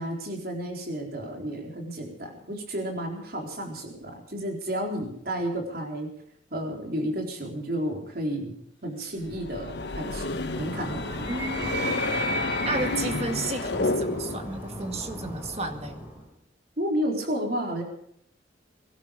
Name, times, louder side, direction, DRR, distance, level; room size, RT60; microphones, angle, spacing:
voice 1, 0.0-6.1 6.5-8.5 8.8-11.3 16.8-17.8, equal, 50° right, 2 dB, 4.0 m, -32 dB
sound 1, 9.3-14.5, left 3 dB, 65° left, 1.2 m, -30 dB
Animal, 10.4-16.3, right 1 dB, 10° right, 4.7 m, -35 dB
voice 2, 11.3-12.1 12.6-16.0, right 3 dB, 35° right, 6 dB, 2.0 m, -33 dB
23.0 x 12.5 x 5.1 m, 0.72 s
head